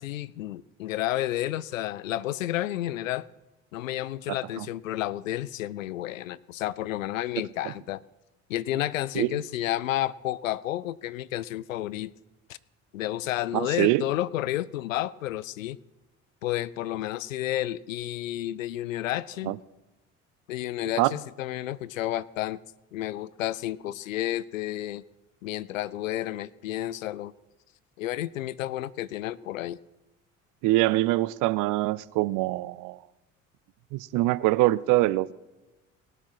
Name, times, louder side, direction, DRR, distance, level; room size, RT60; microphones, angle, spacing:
voice 1, 0.0-3.3 3.7-8.0 8.5-12.1 12.5-12.6 12.9-15.8 16.4-19.6 20.5-22.6 22.9-25.0 25.4-27.3 28.0-29.8, left 14 dB, 80° left, 0.5 m, -31 dB
voice 2, 13.5-14.0 19.5-19.6 21.0-21.1 30.6-33.0 33.9-35.3, right 18 dB, 55° right, 0.5 m, -24 dB
18.5 x 7.4 x 4.8 m
figure-of-eight pair, 55°, 39 cm